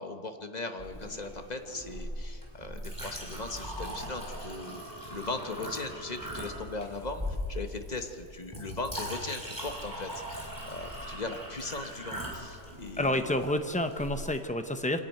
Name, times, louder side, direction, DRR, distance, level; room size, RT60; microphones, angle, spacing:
voice 1, 0.0-13.4, left 3 dB, 30° left, 6 dB, 1.1 m, -39 dB
Chink clink, 0.8-14.4, equal, 10° right, 4.7 m, -40 dB
voice 2, 13.0-15.0, left 1 dB, 10° left, 7 dB, 0.4 m, -29 dB
25.5 x 11.0 x 9.2 m, 2.3 s
omnidirectional pair, 1.8 m